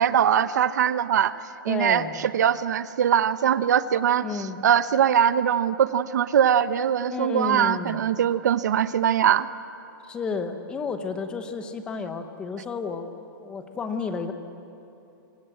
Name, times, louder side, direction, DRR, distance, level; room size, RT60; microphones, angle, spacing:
voice 1, 0.0-1.3 1.6-4.3 4.6-9.5, right 9 dB, 50° right, 14 dB, 0.9 m, -22 dB
voice 2, 1.7-2.2 4.2-4.6 7.1-8.0 10.0-14.3, left 4 dB, 10° left, 8 dB, 0.9 m, -31 dB
25.5 x 25.0 x 7.8 m, 2.9 s
hypercardioid pair, 180°, 12 cm